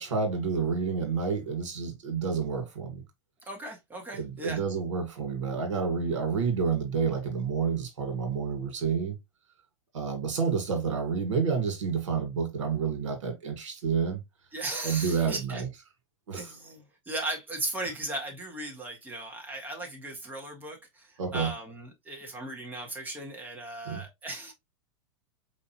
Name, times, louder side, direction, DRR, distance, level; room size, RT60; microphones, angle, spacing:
voice 1, 0.0-3.0 4.2-9.2 9.9-14.2 14.8-15.7 16.3-16.4 21.2-21.5 23.8-24.0, right 5 dB, 85° right, 1.7 m, -29 dB
voice 2, 3.4-4.6 14.5-15.6 16.3-24.5, right 2 dB, 10° right, 1.6 m, -37 dB
4.5 x 3.0 x 2.9 m
hypercardioid pair, 125°, 15 cm